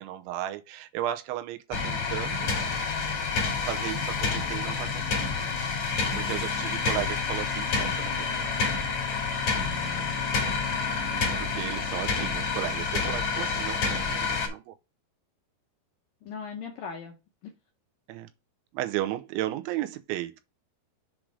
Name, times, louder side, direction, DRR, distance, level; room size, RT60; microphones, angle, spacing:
voice 1, 0.0-2.6 3.6-5.5 6.2-8.5 11.0-14.8 18.1-18.3 18.7-20.4, right 13 dB, 85° right, 3.2 m, -35 dB
sound 1, 1.7-14.5, left 4 dB, 45° left, 3.0 m, -28 dB
voice 2, 6.0-6.4 9.6-10.5 16.2-17.2 17.4-17.5, left 5 dB, 75° left, 2.1 m, -41 dB
7.5 x 3.8 x 4.7 m
omnidirectional pair, 5.3 m